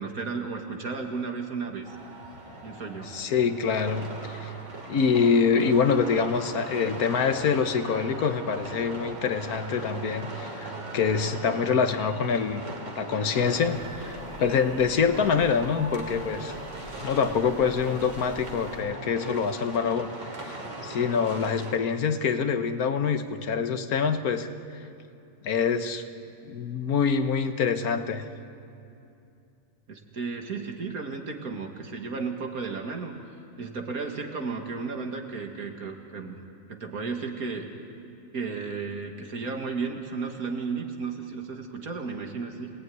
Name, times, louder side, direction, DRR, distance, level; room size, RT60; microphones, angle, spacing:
voice 1, 0.0-2.0 2.6-3.1 29.9-33.1 33.6-36.4 36.7-37.7 38.3-42.7, right 4 dB, 80° right, 3 dB, 2.5 m, -34 dB
sound 1, 1.8-21.7, right 1 dB, 55° right, 3.3 m, -39 dB
voice 2, 3.1-4.5 4.9-12.6 13.0-16.6 17.0-20.1 20.4-20.6 20.8-24.5 24.7-24.8 25.4-26.0 26.5-28.2, left 6 dB, 90° left, 8 dB, 1.6 m, -25 dB
sound 2, 13.4-18.8, left 1 dB, 70° left, 3.2 m, -47 dB
26.0 x 19.0 x 9.4 m, 2.6 s
omnidirectional pair, 1.5 m